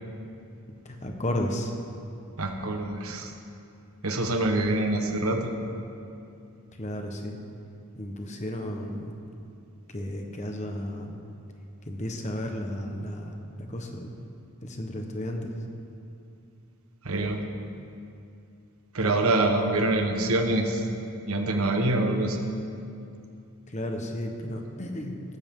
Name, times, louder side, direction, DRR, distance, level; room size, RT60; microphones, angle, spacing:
voice 1, 0.8-1.7 6.8-7.4 7.9-9.1 9.9-11.2 11.9-14.1 14.6-15.5 23.7-25.2, left 1 dB, 30° left, 3 dB, 1.2 m, -33 dB
voice 2, 2.4-3.3 4.0-5.5 17.0-17.4 18.9-20.9 21.3-22.5, right 2 dB, 75° right, 4 dB, 1.4 m, -25 dB
18.0 x 15.0 x 3.8 m, 2.6 s
head